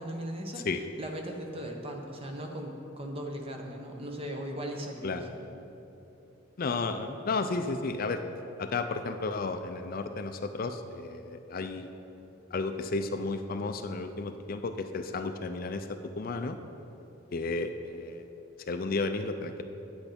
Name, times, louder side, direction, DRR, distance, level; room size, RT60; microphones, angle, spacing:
voice 1, 0.0-0.6 1.0-5.3, equal, 30° right, 2 dB, 1.0 m, -38 dB
voice 2, 6.6-8.2 8.6-11.9 12.5-15.9 16.2-16.6 17.3-18.2 18.7-19.6, left 3 dB, 45° left, 8 dB, 0.4 m, -33 dB
9.3 x 8.4 x 5.1 m, 2.9 s
head